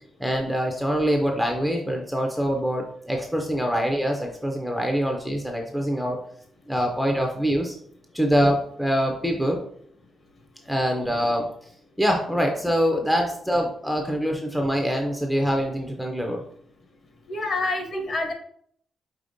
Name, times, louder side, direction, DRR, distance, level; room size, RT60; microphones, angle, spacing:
voice 1, 0.2-6.2 6.7-7.8 8.1-9.6 10.7-11.5 12.0-16.4, equal, ahead, 1 dB, 0.4 m, -24 dB
voice 2, 17.3-18.3, left 2 dB, 35° left, 3 dB, 0.7 m, -27 dB
4.9 x 3.7 x 2.5 m, 0.64 s
wide cardioid pair, 180°, 0 cm